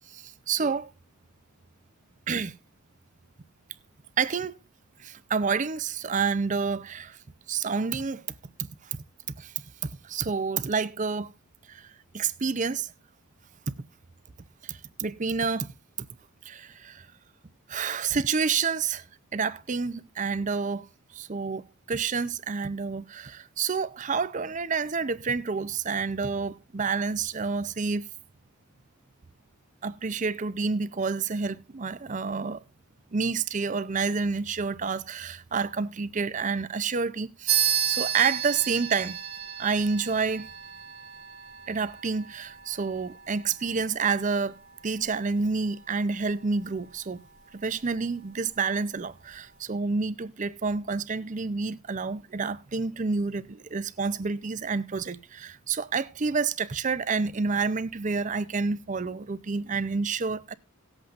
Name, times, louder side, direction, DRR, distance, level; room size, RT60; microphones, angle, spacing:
voice 1, 0.1-0.9 2.3-2.5 4.2-4.6 5.0-7.2 7.5-8.2 8.6-9.0 9.4-9.5 9.8-11.3 11.7-11.9 12.1-12.9 13.7-13.8 14.6-15.7 16.5-17.1 17.7-19.0 19.3-20.9 21.1-28.1 29.8-32.6 33.1-39.2 39.6-40.5 41.7-44.6 44.8-47.2 47.5-60.5, right 5 dB, 35° right, 0.5 m, -29 dB
sound 1, 37.5-47.4, right 10 dB, 65° right, 1.4 m, -33 dB
18.5 x 8.1 x 2.5 m
head